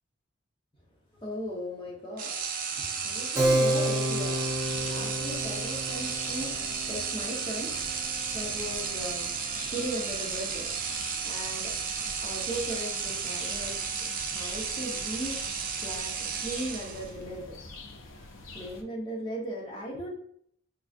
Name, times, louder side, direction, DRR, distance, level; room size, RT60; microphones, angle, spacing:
voice 1, 1.2-2.3 2.7-4.5 4.8-7.7 8.3-9.3 9.7-10.7 11.2-11.7 12.2-13.8 14.3-15.4 15.8-16.1 16.4-17.6 18.5-20.1, equal, 25° left, -4 dB, 1.0 m, -37 dB
sound 1, 2.2-17.2, right 6 dB, 45° right, 0.4 m, -33 dB
sound 2, 3.1-18.8, left 2 dB, 70° left, 0.5 m, -46 dB
Keyboard (musical), 3.4-9.5, right 1 dB, 15° right, 0.7 m, -31 dB
4.7 x 2.6 x 2.4 m, 0.67 s
head